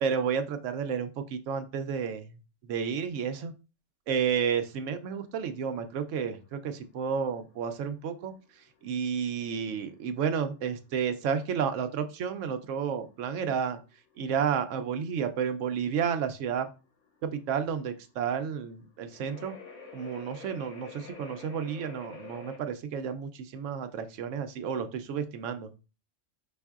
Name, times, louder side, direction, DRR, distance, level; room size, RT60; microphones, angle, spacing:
voice 1, 0.0-2.4 2.7-3.5 4.1-8.3 8.8-13.8 14.2-16.7 17.2-19.5 19.9-25.7, right 7 dB, 80° right, 8 dB, 1.0 m, -31 dB
sound 1, 4.7-22.6, left 4 dB, 75° left, 1.6 m, -51 dB
5.3 x 3.3 x 2.4 m, 0.31 s
omnidirectional pair, 1.3 m